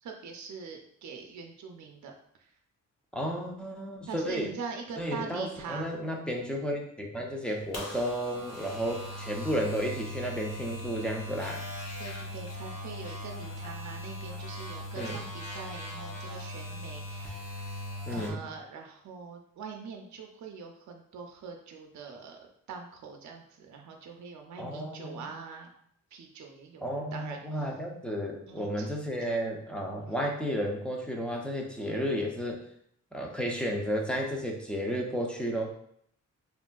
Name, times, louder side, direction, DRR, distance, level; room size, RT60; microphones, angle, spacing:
voice 1, 0.0-2.1 2.4-2.5 4.1-6.0 12.0-17.4 18.1-22.4 22.7-25.7 26.1-27.7 28.5-28.9, right 5 dB, 60° right, 3 dB, 0.5 m, -43 dB
voice 2, 3.1-4.5 5.0-11.6 15.0-15.2 18.1-18.5 24.6-25.3 26.8-32.6 33.1-35.7, equal, 5° left, -1 dB, 0.5 m, -32 dB
sound 1, 7.5-18.3, left 1 dB, 55° left, 0.7 m, -39 dB
3.3 x 2.4 x 2.2 m, 0.67 s
cardioid pair, 100°, 32 cm